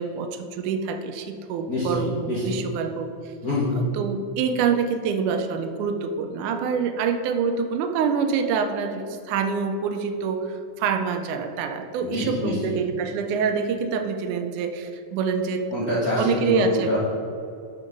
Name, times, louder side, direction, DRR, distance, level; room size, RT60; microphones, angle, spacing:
voice 1, 0.0-3.1 4.0-15.6 16.2-17.0, right 6 dB, 80° right, 6 dB, 2.0 m, -26 dB
voice 2, 1.7-2.6 3.4-3.8 12.0-12.8 15.7-17.0, left 1 dB, 50° left, -9 dB, 1.0 m, -26 dB
6.4 x 5.1 x 5.9 m, 2.5 s
omnidirectional pair, 3.6 m